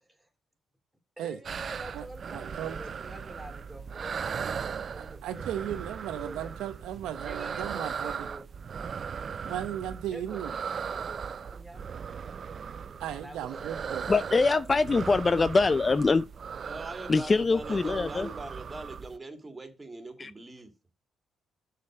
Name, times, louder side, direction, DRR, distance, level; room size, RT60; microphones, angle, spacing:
voice 1, 1.2-5.5 6.1-6.5 7.2-8.4 10.1-12.4 12.9-13.7, right 1 dB, 5° right, 3.5 m, -47 dB
sound 1, 1.4-19.2, right 6 dB, 50° right, 0.4 m, -38 dB
voice 2, 1.9-2.8 5.2-8.3 9.3-10.5 13.0-14.1, right 11 dB, 85° right, 0.8 m, -36 dB
voice 3, 14.1-16.2 17.1-18.3 20.2-20.3, left 3 dB, 30° left, 0.4 m, -24 dB
voice 4, 16.6-20.7, right 2 dB, 20° right, 2.5 m, -42 dB
6.7 x 5.3 x 6.4 m
cardioid pair, 90°, 0 cm